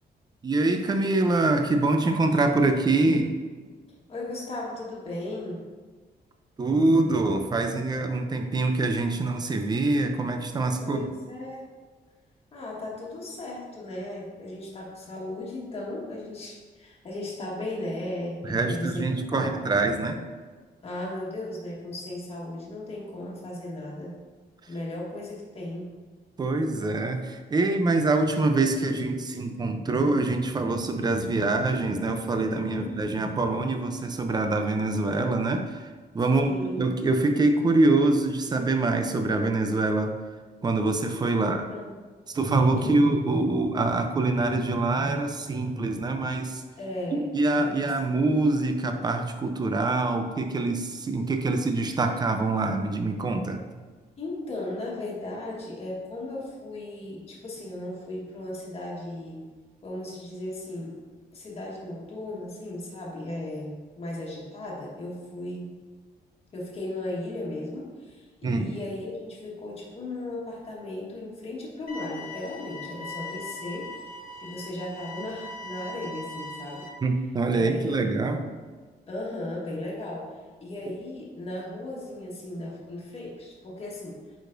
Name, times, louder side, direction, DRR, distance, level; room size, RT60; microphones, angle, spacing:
voice 1, 0.4-3.3 6.6-11.0 18.4-20.2 26.4-35.9 36.1-40.2 40.6-41.7 42.3-46.6 47.3-53.7 68.4-68.8 77.0-78.4, right 2 dB, 25° right, 5 dB, 0.5 m, -25 dB
voice 2, 4.1-5.6 10.8-11.7 12.5-19.6 20.8-24.2 24.7-25.9 32.7-33.1 36.3-36.8 41.3-42.0 42.8-43.0 46.8-47.9 54.2-59.4 59.8-61.0 61.3-65.7 66.5-73.9 74.4-76.9 77.5-78.0 79.1-84.2, left 1 dB, 35° left, -4 dB, 1.5 m, -36 dB
sound 1, 71.9-76.9, left 2 dB, 60° left, 1.1 m, -40 dB
8.9 x 4.9 x 2.6 m, 1.4 s
wide cardioid pair, 160°, 17 cm